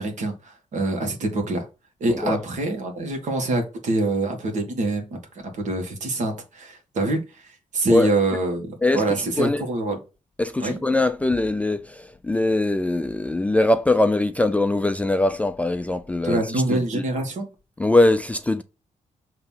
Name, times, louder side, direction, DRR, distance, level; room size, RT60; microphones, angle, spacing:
voice 1, 0.0-1.7 2.0-7.2 7.7-10.0 10.6-10.8 16.2-17.5, right 2 dB, 65° right, 1.9 m, -25 dB
voice 2, 10.4-16.4 16.7-17.0 17.8-18.6, left 2 dB, 10° left, 0.3 m, -21 dB
6.8 x 3.0 x 5.6 m
wide cardioid pair, 150°, 14 cm